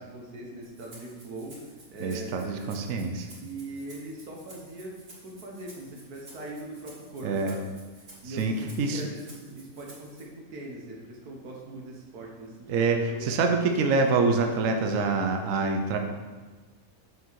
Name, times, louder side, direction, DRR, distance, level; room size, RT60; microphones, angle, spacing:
voice 1, 0.0-2.8 3.4-5.0 5.2-13.3, right 2 dB, 85° right, -1 dB, 1.7 m, -41 dB
Rattle (instrument), 0.6-10.2, right 2 dB, 40° right, 2.0 m, -52 dB
voice 2, 2.0-3.3 7.2-7.6 8.2-9.0 12.7-16.0, right 4 dB, 65° right, 4 dB, 1.1 m, -26 dB
6.9 x 6.6 x 4.6 m, 1.3 s
omnidirectional pair, 1.6 m